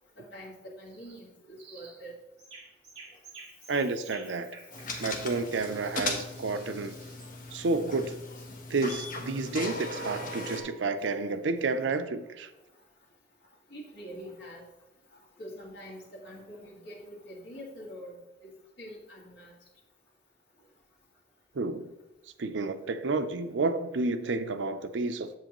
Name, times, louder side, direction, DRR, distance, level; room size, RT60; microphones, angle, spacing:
voice 1, 0.2-2.1 4.7-4.8 11.0-11.1 11.6-11.7 13.7-14.6 15.4-18.2 18.4-18.5 18.8-19.5, equal, 70° left, -4 dB, 2.1 m, -45 dB
sound 1, 0.9-1.2 1.6-2.0 2.4-7.3, right 4 dB, 35° right, 2.1 m, -51 dB
voice 2, 3.7-4.6 5.0-7.0 7.5-8.2 8.7-12.5 21.5-21.9 22.4-25.3, right 3 dB, 80° right, 10 dB, 0.5 m, -30 dB
sound 2, 4.7-10.6, left 2 dB, 45° left, 1.1 m, -38 dB
8.1 x 7.5 x 3.0 m, 1.0 s
head